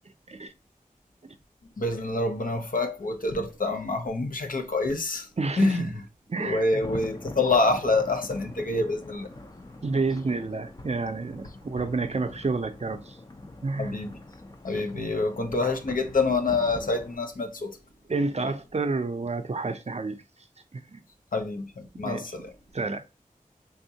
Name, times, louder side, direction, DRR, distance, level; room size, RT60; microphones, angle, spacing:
voice 1, 1.8-5.3 5.6-5.9 6.4-9.3 13.8-14.1 14.6-17.8 21.3-22.5, left 3 dB, 70° left, 0.7 m, -27 dB
voice 2, 5.4-5.9 6.3-6.8 9.8-13.2 13.6-14.0 18.1-20.2 20.7-21.0 21.9-22.3 22.7-23.0, right 3 dB, 50° right, 0.5 m, -30 dB
sound 1, 6.8-17.2, left 2 dB, 25° left, 0.5 m, -43 dB
3.5 x 2.7 x 2.7 m
wide cardioid pair, 45°, 15 cm